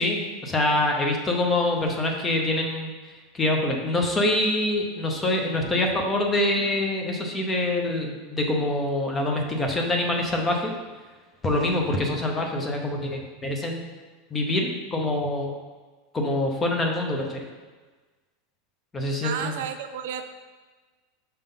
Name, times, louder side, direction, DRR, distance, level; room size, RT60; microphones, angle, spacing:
voice 1, 0.0-2.9 3.3-10.7 11.4-13.8 14.3-15.6 16.1-17.5 18.9-19.5, left 1 dB, 15° left, 2 dB, 0.7 m, -25 dB
voice 2, 19.2-20.2, right 8 dB, 70° right, 8 dB, 0.5 m, -32 dB
5.5 x 3.7 x 5.4 m, 1.3 s
supercardioid pair, 175°, 0 cm